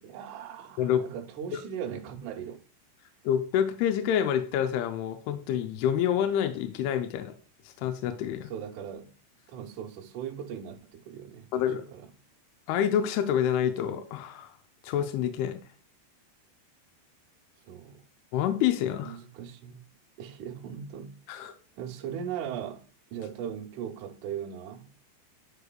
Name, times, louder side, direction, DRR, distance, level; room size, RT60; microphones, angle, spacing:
voice 1, 0.0-2.6 8.5-9.1 9.5-12.1 17.7-18.0 19.0-19.8 20.2-21.2 21.8-22.8 23.1-24.9, right 8 dB, 90° right, 1.7 m, -39 dB
voice 2, 3.2-7.3 7.8-8.5 11.5-11.8 12.7-14.5 14.8-15.6 18.3-19.2 21.3-21.5, left 9 dB, 80° left, 2.5 m, -27 dB
9.8 x 4.8 x 2.3 m
omnidirectional pair, 4.9 m